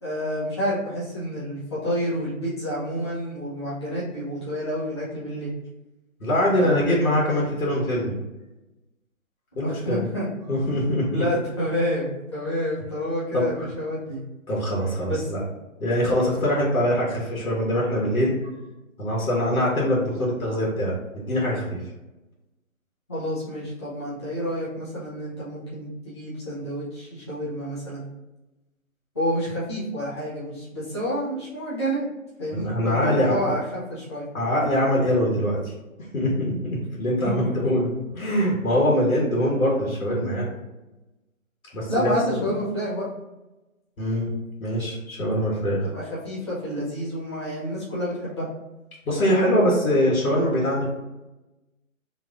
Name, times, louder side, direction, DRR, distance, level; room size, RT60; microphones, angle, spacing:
voice 1, 0.0-5.5 6.5-7.2 9.6-10.3 11.1-14.2 15.1-15.2 23.1-28.1 29.1-32.1 32.4-34.3 37.2-37.3 37.6-37.7 41.9-43.1 45.8-48.5, equal, 20° left, -10 dB, 0.6 m, -29 dB
voice 2, 6.2-8.1 9.5-10.0 10.5-11.2 13.3-13.5 14.5-15.4 15.8-18.5 19.0-21.8 32.5-33.3 34.3-35.7 36.1-40.5 41.7-42.4 44.0-44.3 44.6-45.8 49.0-50.8, equal, 80° left, -4 dB, 1.5 m, -23 dB
3.2 x 2.5 x 3.4 m, 1.0 s
hypercardioid pair, 170°, 41 cm